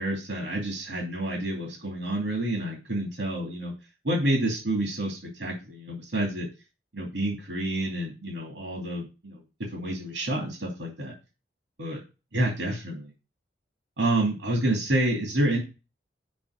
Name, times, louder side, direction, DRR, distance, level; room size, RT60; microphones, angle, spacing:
voice 1, 0.0-3.7 4.0-6.5 6.9-9.4 9.7-11.1 11.8-12.0 12.3-13.1 14.0-15.6, right 1 dB, 80° right, -1 dB, 2.5 m, -28 dB
6.1 x 5.1 x 6.3 m, 0.30 s
head